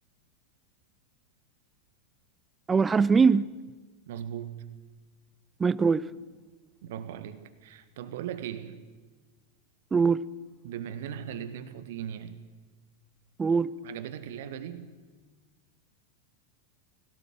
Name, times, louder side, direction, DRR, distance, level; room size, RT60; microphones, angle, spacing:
voice 1, 2.7-3.5 5.6-6.0 9.9-10.2 13.4-13.7, right 5 dB, 15° right, 0.5 m, -22 dB
voice 2, 4.1-4.8 6.8-8.9 10.6-12.4 13.8-14.9, right 9 dB, 55° right, 1.5 m, -38 dB
20.5 x 17.5 x 7.7 m
figure-of-eight pair, 90°, 0 cm